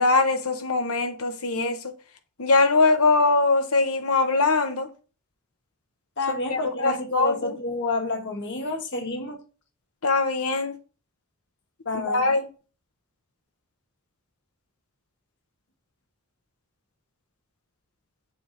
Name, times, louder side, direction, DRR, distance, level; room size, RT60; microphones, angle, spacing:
voice 1, 0.0-1.9 2.4-4.9 6.5-7.5 10.0-10.7 12.1-12.5, left 3 dB, 85° left, 1.1 m, -22 dB
voice 2, 6.2-9.4 11.8-12.2, left 2 dB, 55° left, 1.3 m, -29 dB
6.9 x 3.4 x 3.9 m
head